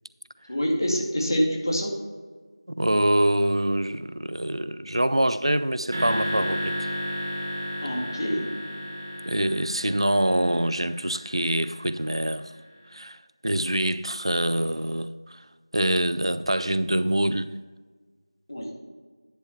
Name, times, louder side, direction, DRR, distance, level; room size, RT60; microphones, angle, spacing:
voice 1, 0.5-1.9 7.8-8.4 18.5-18.7, equal, 50° left, -1 dB, 2.0 m, -26 dB
voice 2, 2.8-6.8 9.3-12.5 12.9-13.2 13.4-15.4 15.7-17.5, right 1 dB, 85° right, 14 dB, 0.5 m, -25 dB
sound 1, 5.9-12.3, left 1 dB, 30° right, 1.1 m, -33 dB
10.0 x 5.3 x 4.5 m, 1.4 s
figure-of-eight pair, 175°, 3 cm